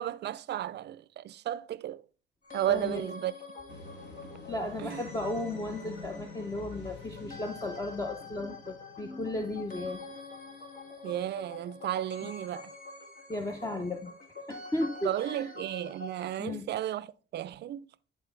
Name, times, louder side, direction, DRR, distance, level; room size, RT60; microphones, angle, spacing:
voice 1, 0.0-2.0 2.5-3.4 4.8-5.0 11.0-12.7 15.0-17.1 17.3-17.9, right 12 dB, 60° right, 0.4 m, -33 dB
sound 1, 2.4-16.4, left 3 dB, 45° left, 1.6 m, -46 dB
voice 2, 2.7-3.0 4.5-10.0 12.2-12.3 13.3-14.1 14.5-15.1 16.4-16.7, left 1 dB, 15° left, 0.7 m, -35 dB
sound 2, 3.7-10.6, left 4 dB, 60° left, 1.8 m, -48 dB
9.9 x 4.1 x 3.3 m
cardioid pair, 90°, 20 cm